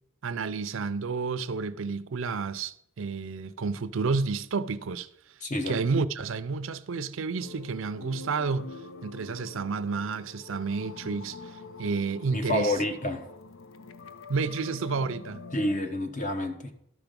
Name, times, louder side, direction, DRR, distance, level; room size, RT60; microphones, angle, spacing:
voice 1, 0.2-5.4 5.7-12.8 14.3-15.4, right 4 dB, 70° right, 0.5 m, -31 dB
voice 2, 5.4-5.8 12.3-13.3 15.5-16.7, left 1 dB, 35° left, 1.0 m, -29 dB
sound 1, 7.4-15.8, left 3 dB, 70° left, 0.6 m, -45 dB
12.5 x 5.8 x 5.2 m
head